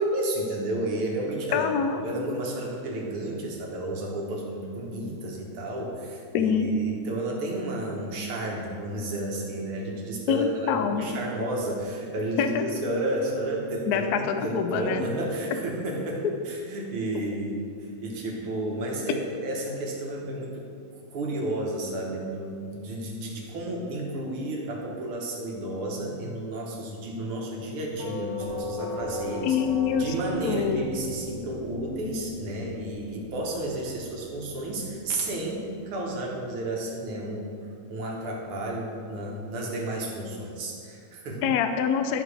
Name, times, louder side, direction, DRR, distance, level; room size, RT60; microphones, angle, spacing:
voice 1, 0.0-1.7 2.0-20.7 21.1-29.6 30.0-41.6, right 1 dB, 90° right, -1 dB, 2.1 m, -32 dB
voice 2, 1.5-2.0 6.3-6.7 10.3-11.1 12.4-12.7 13.9-15.1 29.4-30.1 30.4-30.9 41.4-42.2, left 7 dB, 80° left, 7 dB, 0.8 m, -25 dB
Doorbell, 28.0-36.8, left 2 dB, 30° right, 2.5 m, -38 dB
11.0 x 6.5 x 3.3 m, 2.4 s
omnidirectional pair, 2.3 m